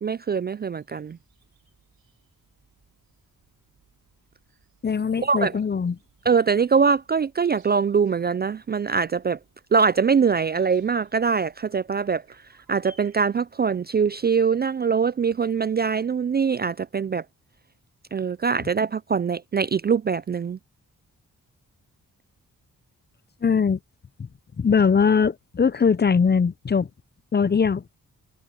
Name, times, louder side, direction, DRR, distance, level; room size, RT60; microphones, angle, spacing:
voice 1, 0.0-1.2 5.2-5.6 6.3-9.4 9.7-12.2 12.7-17.2 18.1-20.6, right 6 dB, 30° right, 0.4 m, -23 dB
sound 1, 0.8-13.4, right 5 dB, 80° right, 4.8 m, -61 dB
voice 2, 4.8-6.0 23.4-23.8 24.6-26.9 27.3-27.8, left 6 dB, 30° left, 0.6 m, -21 dB
cardioid pair, 55°, 35 cm